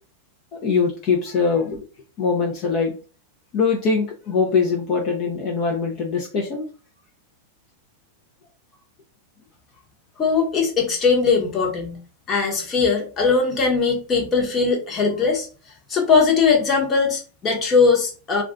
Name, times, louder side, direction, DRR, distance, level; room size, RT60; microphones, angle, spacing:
voice 1, 0.6-1.9 2.2-2.9 3.5-6.7, left 5 dB, 40° left, 0 dB, 0.6 m, -22 dB
voice 2, 10.2-12.0 12.3-15.5 15.9-18.4, left 5 dB, 25° left, 1 dB, 1.0 m, -20 dB
2.4 x 2.3 x 3.7 m, 0.36 s
supercardioid pair, 140°, 0 cm